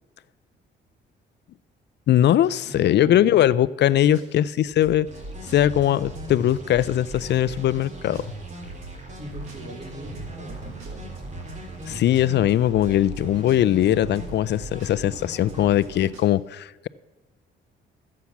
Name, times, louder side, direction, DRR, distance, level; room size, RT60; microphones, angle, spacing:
voice 1, 2.1-5.1 5.5-8.3 11.9-16.9, left 12 dB, 60° left, 19 dB, 0.4 m, -20 dB
voice 2, 2.7-3.4 9.1-11.5, right 1 dB, 60° right, 0 dB, 3.8 m, -40 dB
sound 1, 4.1-4.5 4.8-5.2 5.5-5.6 5.8-6.5 6.8-7.2 7.5-7.9 8.1-9.9 10.1-10.5 10.8-11.9 12.1-12.5 12.8-13.2 13.5-13.6 13.8-14.5 14.8-15.2 15.5-15.9 16.1-16.2, right 3 dB, 90° right, 2.7 m, -43 dB
sound 2, 5.1-16.1, right 2 dB, 35° right, 2.4 m, -38 dB
13.0 x 8.4 x 5.9 m, 1.2 s
cardioid pair, 90°, 20 cm